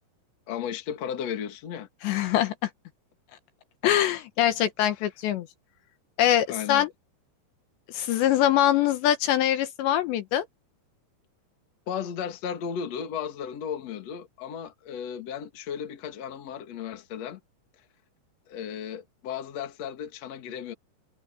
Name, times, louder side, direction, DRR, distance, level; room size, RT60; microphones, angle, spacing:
voice 1, 0.5-1.9 6.5-6.8 11.9-17.4 18.5-20.7, left 8 dB, 45° left, 2.5 m, -35 dB
voice 2, 2.0-2.7 3.8-5.5 6.2-6.9 7.9-10.4, left 11 dB, 75° left, 3.3 m, -23 dB
omnidirectional pair, 5.3 m